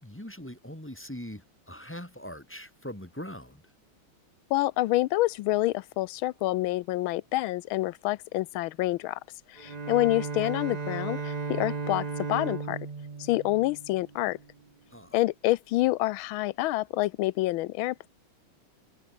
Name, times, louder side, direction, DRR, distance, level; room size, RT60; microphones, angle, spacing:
voice 1, 0.0-3.6 14.9-15.2, equal, 5° left, 2.2 m, -41 dB
voice 2, 4.5-9.2 9.5-12.8 13.2-14.4 15.1-18.1, left 17 dB, 80° left, 1.4 m, -27 dB
Bowed string instrument, 9.6-14.5, right 4 dB, 30° right, 0.7 m, -35 dB
omnidirectional pair, 2.3 m